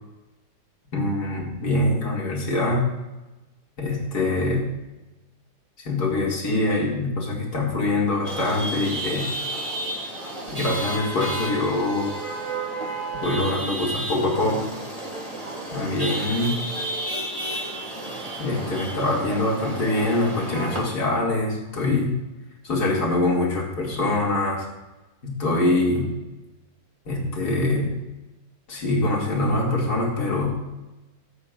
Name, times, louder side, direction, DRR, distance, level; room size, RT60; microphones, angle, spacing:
voice 1, 0.9-2.9 3.8-4.7 5.8-9.3 10.6-12.2 13.2-14.7 15.7-16.6 18.4-22.1 22.6-24.6 25.2-26.1 27.1-28.0 28.7-30.6, left 2 dB, 60° left, -2 dB, 2.9 m, -24 dB
Chatter / Vehicle horn car horn honking / Traffic noise roadway noise, 8.2-20.8, right 1 dB, 20° right, 2.0 m, -31 dB
17.5 x 8.2 x 2.5 m, 1.0 s
omnidirectional pair, 1.9 m